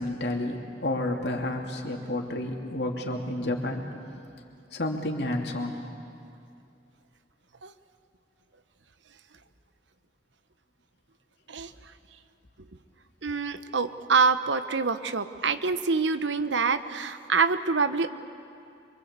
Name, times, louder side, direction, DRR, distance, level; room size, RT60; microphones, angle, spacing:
voice 1, 0.0-3.8 4.7-5.8, left 1 dB, 65° left, 2 dB, 2.8 m, -30 dB
voice 2, 13.2-18.1, right 4 dB, 85° right, 11 dB, 1.1 m, -26 dB
26.0 x 24.0 x 8.2 m, 2.6 s
head